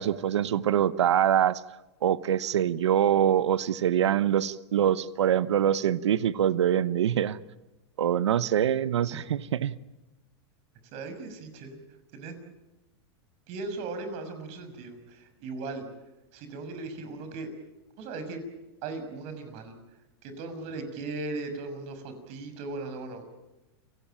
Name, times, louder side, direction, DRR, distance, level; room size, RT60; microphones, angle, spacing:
voice 1, 0.0-1.6 2.0-7.4 8.0-9.8, right 10 dB, 90° right, 1.0 m, -24 dB
voice 2, 10.9-11.8 12.1-12.3 13.5-15.0 15.4-15.9 16.3-17.5 18.0-18.4 18.8-19.8 20.2-23.2, right 3 dB, 50° right, 6.2 m, -37 dB
29.5 x 18.0 x 9.0 m
hypercardioid pair, 120°, 14 cm